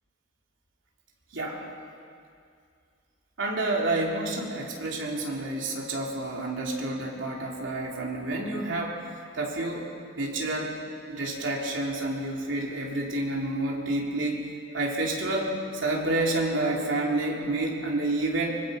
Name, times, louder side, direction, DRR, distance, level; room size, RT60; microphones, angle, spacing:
voice 1, 1.3-1.6 3.4-9.0 9.3-9.9 10.2-10.7 11.1-14.5 14.7-15.5 15.8-18.6, right 2 dB, 75° right, -2 dB, 3.3 m, -29 dB
24.5 x 21.0 x 5.2 m, 2.3 s
head